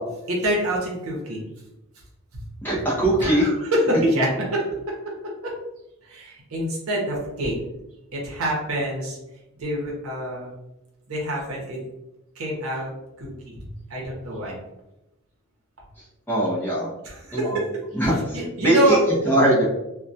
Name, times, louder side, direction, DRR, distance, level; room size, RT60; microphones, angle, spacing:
voice 1, 0.3-1.4 2.3-2.4 3.2-4.6 5.4-5.5 6.1-7.5 8.1-9.2 9.6-10.5 11.1-11.8 12.4-12.9 13.2-14.6 17.0-17.7 18.3-19.0, right 1 dB, 75° right, -2 dB, 0.8 m, -26 dB
voice 2, 2.6-3.5 16.3-16.9 17.3-17.6 17.9-19.6, right 1 dB, 10° left, -6 dB, 0.5 m, -21 dB
2.2 x 2.2 x 2.6 m, 0.92 s
head